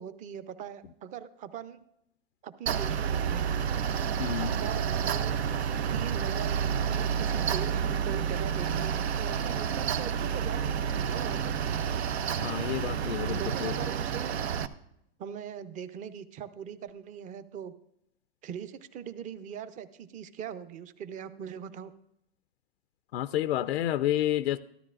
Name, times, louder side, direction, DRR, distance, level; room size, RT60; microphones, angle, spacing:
voice 1, 0.0-1.8 2.4-3.5 4.4-5.4 5.9-11.5 13.3-14.4 15.2-17.7 18.4-21.9, right 8 dB, 25° right, 13 dB, 0.6 m, -41 dB
Mechanical fan, 2.7-14.7, right 7 dB, 85° right, 0.7 m, -30 dB
voice 2, 4.2-4.5 12.4-13.8 23.1-24.6, left 12 dB, 85° left, 12 dB, 0.5 m, -29 dB
13.5 x 12.0 x 2.5 m, 0.80 s
hypercardioid pair, 130°, 31 cm